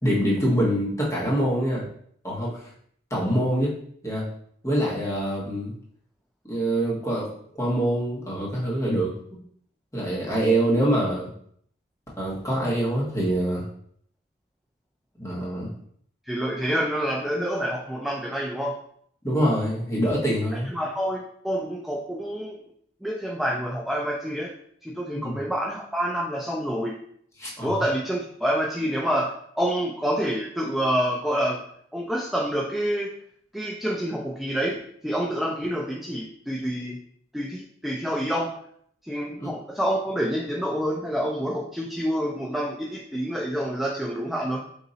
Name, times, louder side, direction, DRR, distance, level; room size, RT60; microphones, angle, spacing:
voice 1, 0.0-1.8 2.2-2.7 3.1-3.7 4.0-4.2 4.6-5.7 6.5-7.3 7.5-9.1 9.9-11.3 12.2-13.7 15.2-15.7 19.2-20.8 25.1-25.4 27.4-27.8 39.4-39.5, right 1 dB, 15° left, -6 dB, 1.3 m, -25 dB
voice 2, 16.3-18.8 20.7-22.6 23.0-24.5 24.8-27.0 27.6-31.6 31.9-33.1 33.5-37.0 37.3-38.5 39.0-44.6, equal, ahead, -3 dB, 0.4 m, -27 dB
3.9 x 2.8 x 4.0 m, 0.64 s
head